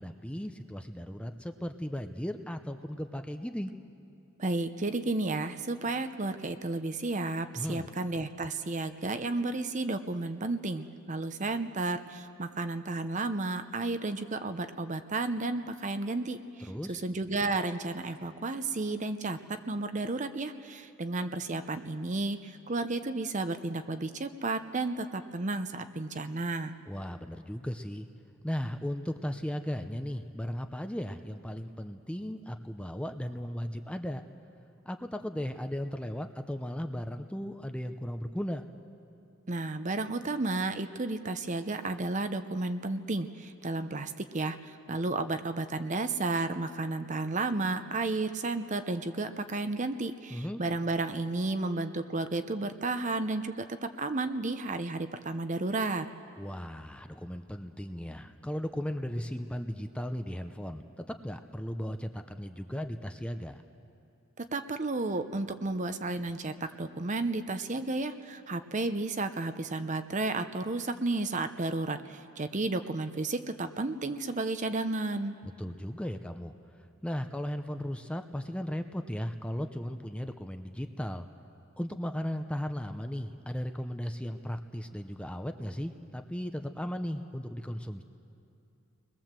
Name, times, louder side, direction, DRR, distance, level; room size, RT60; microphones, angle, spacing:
voice 1, 0.0-3.7 7.6-7.9 16.7-17.0 26.9-28.1 28.4-34.2 34.9-38.6 50.3-50.6 56.4-63.6 75.4-76.5 77.0-81.3 81.8-88.0, equal, 5° left, 7 dB, 0.6 m, -36 dB
voice 2, 4.4-16.4 16.9-26.7 39.5-53.7 54.0-56.1 64.5-75.4, right 2 dB, 35° right, 9 dB, 0.7 m, -32 dB
30.0 x 21.0 x 7.5 m, 2.6 s
head